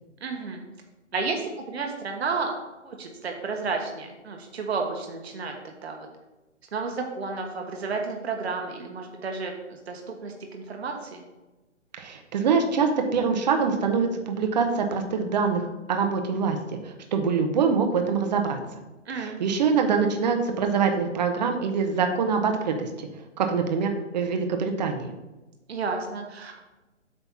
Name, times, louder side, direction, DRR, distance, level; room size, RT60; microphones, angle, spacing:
voice 1, 0.2-0.6 1.1-2.5 2.8-5.5 5.8-6.1 6.7-11.2 19.1-19.4 25.7-26.6, right 4 dB, 55° right, 3 dB, 1.4 m, -32 dB
voice 2, 12.0-16.6 16.8-18.6 19.2-23.1 23.4-25.1, right 5 dB, 35° right, 5 dB, 1.0 m, -24 dB
8.4 x 3.4 x 5.6 m, 1.1 s
figure-of-eight pair, 140°, 37 cm